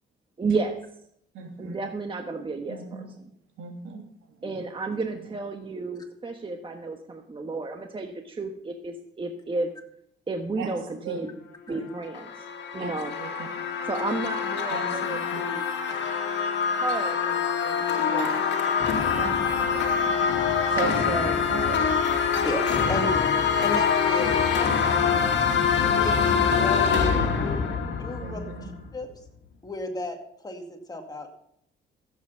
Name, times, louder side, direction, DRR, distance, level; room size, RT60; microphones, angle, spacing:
voice 1, 0.4-0.8 1.6-3.3 4.4-9.7 10.3-11.3 11.7-12.4 12.7-13.1 13.8-15.6 16.7-18.6 20.7-21.4, right 3 dB, 25° right, 4 dB, 1.3 m, -32 dB
voice 2, 1.3-1.8 2.7-3.1 3.6-4.1 10.6-10.7 11.0-11.2 11.7-11.9 12.8-13.5 14.7-15.5 19.1-20.1 20.7-21.2 21.5-22.0 28.2-28.7, right 5 dB, 85° right, 3 dB, 2.7 m, -36 dB
sound 1, 11.9-28.9, left 6 dB, 65° left, 2.3 m, -25 dB
voice 3, 22.4-23.1 23.6-24.4 25.8-27.7 28.0-28.4 28.9-29.1 29.6-30.2 30.4-30.6 30.9-31.3, left 2 dB, 20° left, 3 dB, 2.4 m, -33 dB
14.5 x 8.1 x 5.7 m, 0.71 s
cardioid pair, 90°, 20 cm